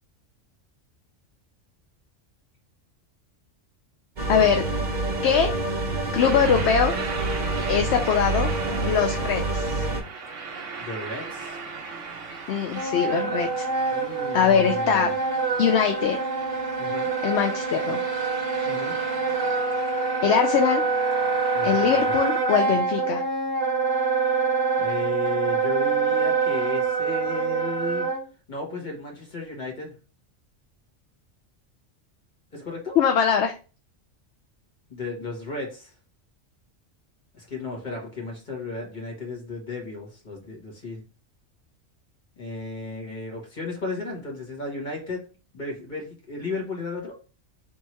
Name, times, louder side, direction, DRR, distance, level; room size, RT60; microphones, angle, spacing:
sound 1, 4.2-10.0, right 2 dB, 45° right, 0.7 m, -27 dB
voice 1, 4.3-4.6 5.2-5.5 6.1-6.9 7.7-8.5 8.8-9.9 12.5-13.7 14.3-15.1 15.6-16.2 17.2-18.0 20.2-20.8 21.6-23.2 33.0-33.6, left 7 dB, 65° left, 5 dB, 0.8 m, -22 dB
sound 2, 6.2-22.4, right 5 dB, 70° right, 1.2 m, -39 dB
voice 2, 10.8-11.6 13.9-15.1 16.8-17.1 18.6-19.0 21.5-22.2 24.8-28.1 28.5-29.9 32.5-33.0 34.9-35.9 37.3-41.0 42.4-45.2 45.5-47.1, left 3 dB, 35° left, -1 dB, 1.7 m, -34 dB
Wind instrument woodwind instrument, 12.7-28.2, right 4 dB, 20° right, 1.1 m, -25 dB
3.6 x 3.0 x 4.3 m, 0.34 s
omnidirectional pair, 1.3 m